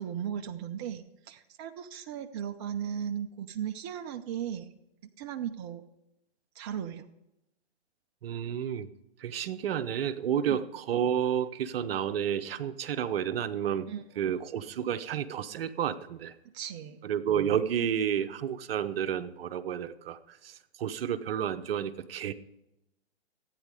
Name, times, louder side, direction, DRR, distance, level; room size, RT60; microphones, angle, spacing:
voice 1, 0.0-4.7 5.2-5.8 6.6-7.1 10.5-10.6 13.9-14.4 16.5-17.0, right 9 dB, 25° right, 4 dB, 0.4 m, -37 dB
voice 2, 8.2-8.9 9.2-16.4 17.0-22.3, right 9 dB, 55° right, 10 dB, 0.9 m, -31 dB
13.5 x 9.2 x 4.9 m, 0.89 s
hypercardioid pair, 130°, 34 cm